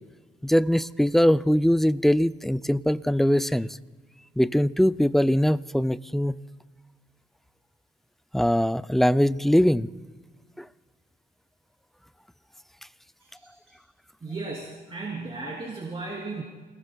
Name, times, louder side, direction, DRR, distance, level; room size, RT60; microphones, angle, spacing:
voice 1, 0.4-3.7 4.4-6.3 8.3-9.9, equal, ahead, 0.4 m, -21 dB
voice 2, 14.2-16.4, right 3 dB, 30° right, 3.2 m, -35 dB
29.5 x 20.0 x 2.3 m
cardioid pair, 90°, 20 cm